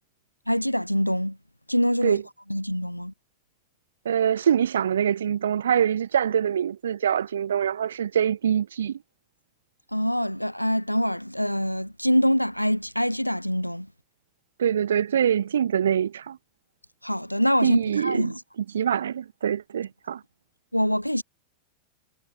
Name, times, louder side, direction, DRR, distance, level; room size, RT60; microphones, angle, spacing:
voice 1, 0.5-1.4 1.7-2.2 2.5-3.1 9.9-13.9 17.0-18.4 20.7-21.2, equal, 90° left, 0.5 m, -24 dB
voice 2, 4.1-9.0 14.6-16.4 17.6-18.3 18.7-20.2, right 9 dB, 65° right, 0.3 m, -24 dB
figure-of-eight pair, 90°, 0 cm